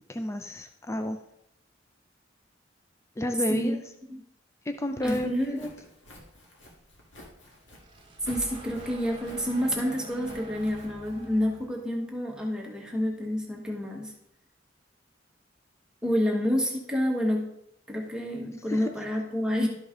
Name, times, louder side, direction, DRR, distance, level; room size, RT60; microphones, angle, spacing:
voice 1, 0.1-1.2 3.2-3.8 4.7-5.7 18.7-18.9, equal, 15° left, 7 dB, 0.4 m, -30 dB
Walk footsteps, 4.9-11.7, left 1 dB, 70° left, 1.9 m, -51 dB
voice 2, 5.0-5.6 8.2-14.1 16.0-17.5 17.9-19.7, equal, 5° right, -1 dB, 1.3 m, -28 dB
Asoada impact distortion dark, 7.6-12.2, right 1 dB, 25° right, 1.1 m, -45 dB
12.0 x 5.2 x 3.7 m, 0.75 s
head